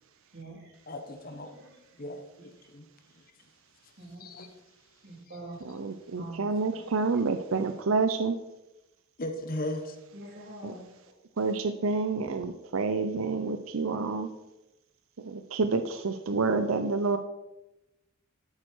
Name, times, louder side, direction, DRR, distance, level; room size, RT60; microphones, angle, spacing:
voice 1, 0.3-0.8 1.4-1.7 4.0-4.2 5.0-5.6 6.2-6.5 6.8-6.9 10.1-11.1, right 2 dB, 50° right, -2 dB, 3.7 m, -45 dB
voice 2, 0.9-1.5 2.0-2.9 4.2-4.5 9.2-10.0, left 1 dB, 45° left, 6 dB, 1.3 m, -37 dB
voice 3, 5.6-8.4 10.6-10.7 11.4-14.3 15.2-17.2, right 4 dB, 75° right, 9 dB, 0.7 m, -28 dB
12.5 x 8.7 x 4.6 m, 0.95 s
head